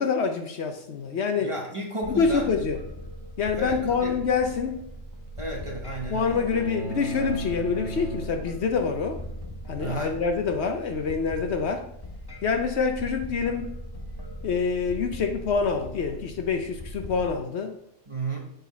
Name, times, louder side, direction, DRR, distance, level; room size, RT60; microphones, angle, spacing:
voice 1, 0.0-1.5 2.1-2.8 3.4-4.8 6.1-9.2 9.7-11.9 12.4-13.7 14.4-17.7, left 5 dB, 65° left, 6 dB, 0.9 m, -26 dB
voice 2, 1.4-2.5 3.6-4.2 5.4-6.4 9.8-10.1 18.1-18.4, right 1 dB, 25° right, 0 dB, 1.1 m, -33 dB
sound 1, 2.0-17.3, equal, 25° left, 0.6 m, -39 dB
sound 2, 6.5-9.0, right 4 dB, 75° right, 1.4 m, -37 dB
8.2 x 4.1 x 4.1 m, 0.77 s
omnidirectional pair, 1.3 m